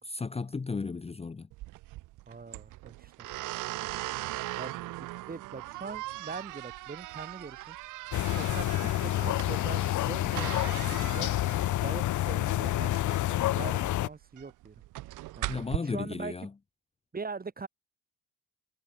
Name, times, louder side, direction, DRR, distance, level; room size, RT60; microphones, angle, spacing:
voice 1, 0.0-1.5 15.5-16.5, left 4 dB, 20° left, 0.8 m, -34 dB
sound 1, 1.5-15.8, right 18 dB, 85° right, 0.6 m, -40 dB
voice 2, 2.3-3.3 4.6-7.8 8.2-11.3 11.8-14.7 15.4-15.5 15.8-16.5 17.1-17.7, right 4 dB, 30° right, 5.1 m, -42 dB
sound 2, 8.1-14.1, left 14 dB, 75° left, 1.3 m, -28 dB
cardioid pair, 90°, 30 cm